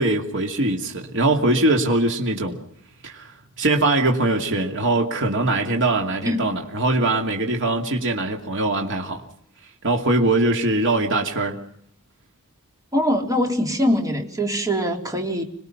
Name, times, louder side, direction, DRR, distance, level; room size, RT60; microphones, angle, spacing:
voice 1, 0.0-2.6 3.0-9.2 9.8-11.6, right 2 dB, 60° right, 2.5 m, -22 dB
voice 2, 6.2-6.5 12.9-15.4, equal, 15° right, 3.6 m, -23 dB
27.0 x 20.5 x 5.9 m
head